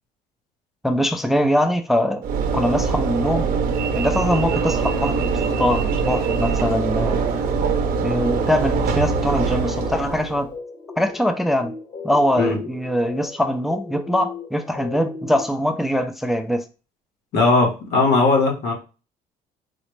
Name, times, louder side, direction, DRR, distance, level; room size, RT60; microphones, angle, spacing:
voice 1, 0.8-2.2 2.5-3.5 3.9-5.3 5.6-7.2 8.0-10.5 11.0-11.7 12.0-16.6, equal, ahead, 0.3 m, -22 dB
Train / Engine / Alarm, 2.2-10.5, right 5 dB, 60° right, 0.6 m, -23 dB
sound 1, 4.2-15.4, left 5 dB, 50° left, 1.2 m, -37 dB
voice 2, 17.3-18.7, left 3 dB, 85° left, 1.1 m, -18 dB
4.0 x 2.0 x 3.1 m
cardioid pair, 110°, 17 cm